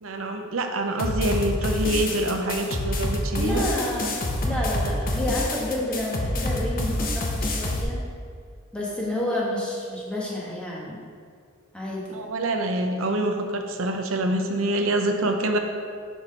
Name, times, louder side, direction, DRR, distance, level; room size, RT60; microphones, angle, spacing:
voice 1, 0.0-3.7 12.1-15.6, right 1 dB, 80° right, 4 dB, 0.7 m, -26 dB
sound 1, 1.0-7.8, left 1 dB, 45° left, 0.8 m, -27 dB
voice 2, 3.4-8.0 8.7-11.0 11.7-12.1, left 1 dB, 5° left, -5 dB, 1.2 m, -29 dB
5.5 x 4.5 x 5.1 m, 2.1 s
head